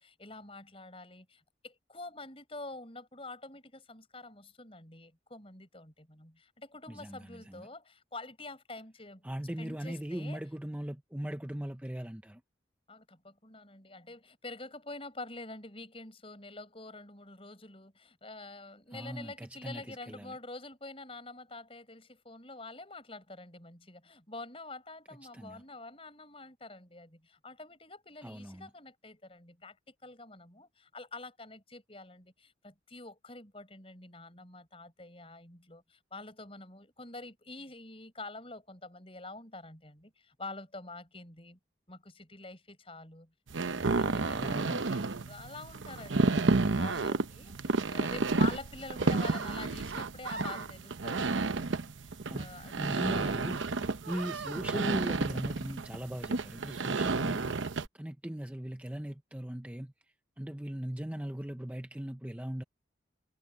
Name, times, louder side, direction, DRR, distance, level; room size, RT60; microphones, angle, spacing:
voice 1, 0.0-9.2 9.6-10.4 12.9-41.6 41.9-53.5, left 2 dB, 30° left, 6.9 m, -47 dB
voice 2, 6.9-7.7 9.2-12.4 18.9-20.4 25.3-25.6 28.2-28.7 44.3-44.9 52.3-57.6 57.9-62.6, equal, 10° right, 0.6 m, -39 dB
sound 1, 43.5-57.9, right 3 dB, 85° right, 0.8 m, -31 dB
head